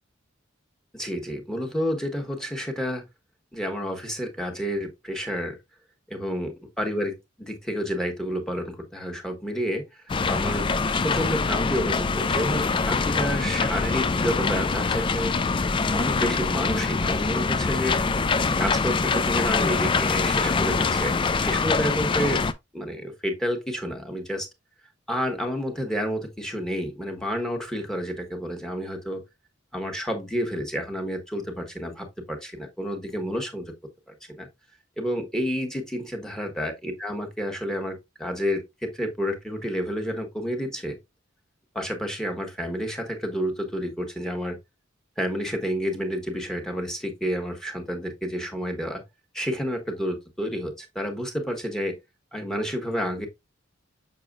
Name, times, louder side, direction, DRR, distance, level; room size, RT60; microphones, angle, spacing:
voice 1, 0.9-3.0 3.5-5.6 6.1-9.9 10.3-10.7 11.0-15.3 15.9-18.0 18.6-22.5 22.7-24.5 25.1-29.2 29.7-33.6 34.3-34.5 35.0-41.0 41.7-44.6 45.2-49.0 49.3-52.0 52.3-53.3, equal, 5° left, 1.3 m, -30 dB
sound 1, 10.1-22.5, left 4 dB, 25° left, 0.4 m, -24 dB
6.7 x 6.2 x 2.4 m
head